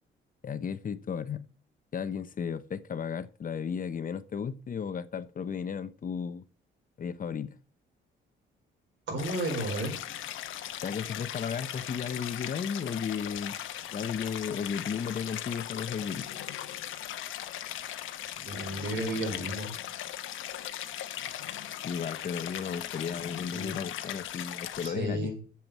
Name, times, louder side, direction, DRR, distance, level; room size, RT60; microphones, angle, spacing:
voice 1, 0.4-1.4 1.9-6.4 7.0-7.5 10.8-13.5 13.9-16.3 21.8-25.3, left 7 dB, 45° left, 1.0 m, -34 dB
voice 2, 9.1-9.9 18.4-19.7 23.5-23.7 24.8-25.4, right 1 dB, 65° right, 4.5 m, -33 dB
Stream, 9.2-24.9, left 11 dB, 80° left, 1.1 m, -38 dB
7.7 x 7.4 x 7.4 m
cardioid pair, 90°, 20 cm